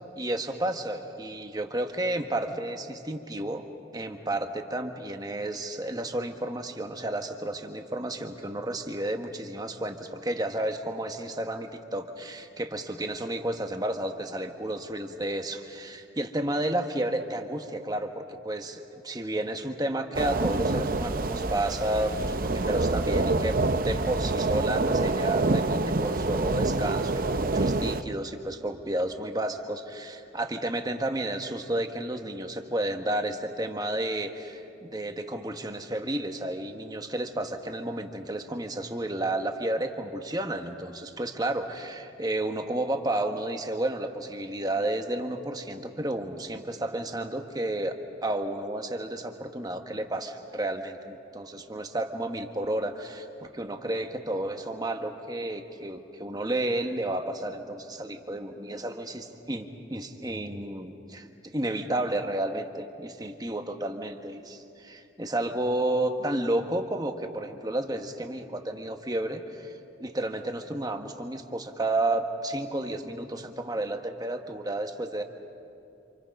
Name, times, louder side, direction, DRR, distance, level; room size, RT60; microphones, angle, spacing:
voice 1, 0.2-3.7 3.9-48.0 48.2-69.7 70.0-75.2, right 1 dB, 20° right, 5 dB, 1.3 m, -31 dB
sound 1, 20.1-28.0, right 2 dB, 50° right, 0.7 m, -26 dB
28.0 x 28.0 x 5.4 m, 2.7 s
head